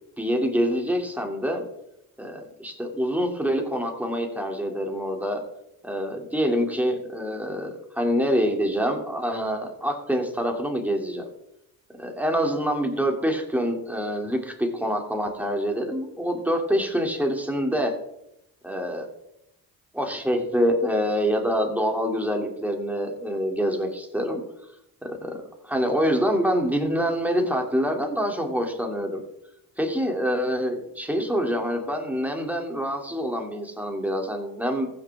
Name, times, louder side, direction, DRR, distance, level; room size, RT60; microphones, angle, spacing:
voice 1, 0.2-1.6 2.2-5.4 5.8-11.2 12.0-17.9 18.6-19.1 19.9-24.4 25.0-29.2 29.8-34.9, equal, 5° right, 2 dB, 2.8 m, -26 dB
15.0 x 6.9 x 3.6 m, 0.82 s
supercardioid pair, 55°, 40 cm